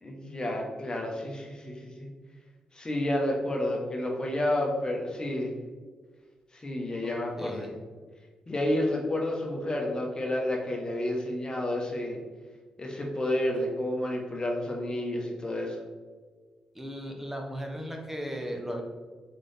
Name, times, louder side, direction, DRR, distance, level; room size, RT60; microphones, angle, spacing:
voice 1, 0.0-2.1 2.7-5.5 6.5-7.7 8.5-12.2 12.8-15.8, left 1 dB, 35° left, 0 dB, 1.2 m, -30 dB
voice 2, 7.4-7.7 16.7-18.8, equal, 10° right, 2 dB, 1.1 m, -36 dB
4.1 x 3.7 x 3.4 m, 1.4 s
supercardioid pair, 50°, 2 cm